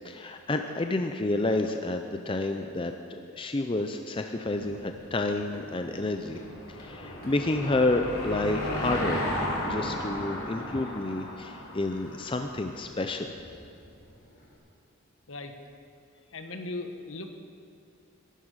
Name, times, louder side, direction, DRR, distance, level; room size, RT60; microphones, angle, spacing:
voice 1, 0.0-2.9 3.3-6.4 6.7-9.3 9.6-13.3, left 2 dB, 25° left, 5 dB, 0.5 m, -29 dB
Run, 4.5-14.6, equal, 40° left, 2.8 m, -53 dB
Car passing by / Engine, 5.9-12.6, left 1 dB, 90° left, 3.2 m, -34 dB
voice 2, 16.3-17.3, left 2 dB, 70° left, 6 dB, 1.2 m, -38 dB
13.0 x 12.0 x 6.6 m, 2.5 s
head